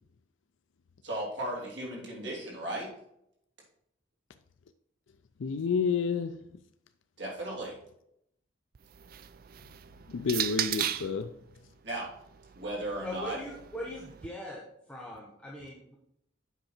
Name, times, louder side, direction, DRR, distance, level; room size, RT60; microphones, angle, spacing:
voice 1, 1.0-2.9 7.2-7.8 11.8-12.1 12.5-13.4, right 1 dB, 65° right, 3.1 m, -36 dB
voice 2, 5.4-6.4 10.1-11.3, left 5 dB, 85° left, 0.5 m, -29 dB
sound 1, 8.7-11.2 12.2-14.3, right 11 dB, 50° right, 0.4 m, -37 dB
voice 3, 13.0-14.6 14.9-16.0, left 1 dB, 5° left, 1.3 m, -40 dB
8.1 x 5.8 x 4.3 m
head